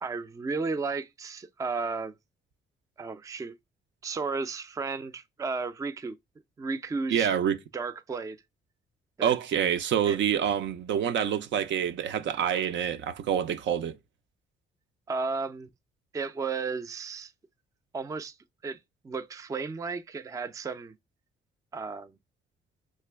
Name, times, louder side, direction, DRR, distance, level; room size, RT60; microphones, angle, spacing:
voice 1, 0.0-2.1 3.0-3.5 4.0-6.2 6.6-7.3 7.7-8.4 9.2-9.4 10.0-10.2 15.1-15.7 16.1-17.3 17.9-18.3 18.6-18.8 19.0-20.9 21.7-22.1, right 4 dB, 15° right, 0.3 m, -33 dB
voice 2, 7.1-7.6 9.2-14.0, right 9 dB, 70° right, 0.5 m, -27 dB
3.3 x 2.9 x 3.3 m
cardioid pair, 90°, 20 cm